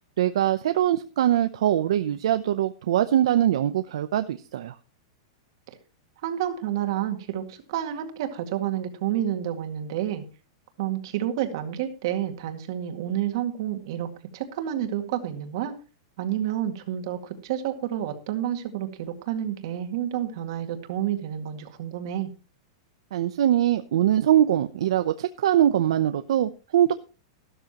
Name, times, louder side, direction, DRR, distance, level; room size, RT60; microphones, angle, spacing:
voice 1, 0.2-4.8 23.1-26.9, right 11 dB, 70° right, 9 dB, 0.7 m, -22 dB
voice 2, 6.2-10.2 10.8-15.7 16.2-22.3, right 11 dB, 50° right, 5 dB, 2.0 m, -29 dB
13.5 x 12.5 x 3.0 m, 0.33 s
supercardioid pair, 170°, 3 cm